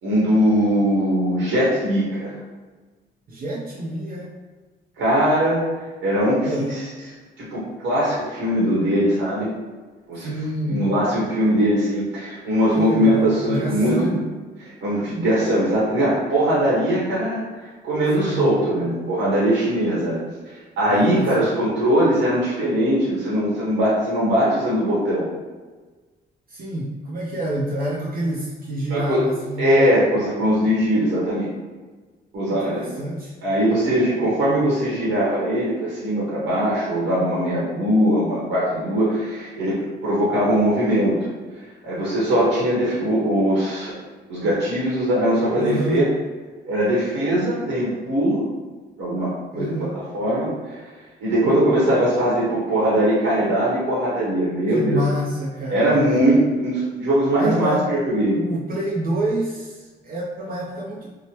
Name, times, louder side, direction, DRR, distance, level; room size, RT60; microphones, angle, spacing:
voice 1, 0.0-2.4 5.0-5.6 6.0-6.8 7.4-9.5 10.1-10.3 10.7-14.2 14.6-20.2 20.8-25.3 28.9-29.2 29.6-31.5 32.3-32.9 33.4-39.8 40.0-41.3 41.6-43.9 44.3-46.0 46.7-48.5 49.0-49.9 50.1-50.8 51.2-55.0 55.7-58.4, equal, 80° right, -7 dB, 1.0 m, -21 dB
voice 2, 3.3-4.3 6.4-6.7 10.1-10.8 12.7-14.2 18.2-18.5 20.9-21.5 26.5-29.8 32.6-33.4 45.6-46.0 49.5-50.0 54.7-55.9 57.4-57.9 58.3-61.1, right 1 dB, 45° right, -4 dB, 0.5 m, -27 dB
3.0 x 2.1 x 2.9 m, 1.3 s
cardioid pair, 90°, 20 cm